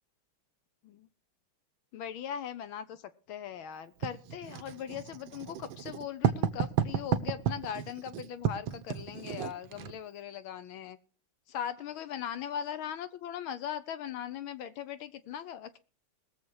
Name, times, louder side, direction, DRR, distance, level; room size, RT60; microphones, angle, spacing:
voice 1, 1.9-11.0 11.5-15.8, left 9 dB, 75° left, 12 dB, 1.6 m, -39 dB
Writing, 4.0-10.0, right 9 dB, 70° right, 1.6 m, -32 dB
20.5 x 7.3 x 4.7 m, 0.37 s
omnidirectional pair, 2.4 m